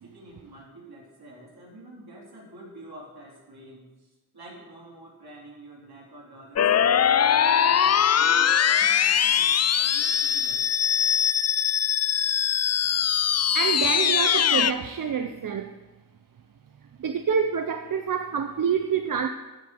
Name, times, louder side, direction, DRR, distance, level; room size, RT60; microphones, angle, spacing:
voice 1, 0.0-3.8 4.3-10.6, right 1 dB, 70° right, -4 dB, 3.6 m, -46 dB
sound 1, 6.6-14.7, left 8 dB, 40° left, 0.4 m, -22 dB
voice 2, 13.5-15.7 17.0-19.3, right 7 dB, 55° right, 8 dB, 0.6 m, -27 dB
9.9 x 5.2 x 8.3 m, 1.1 s
cardioid pair, 55°, 39 cm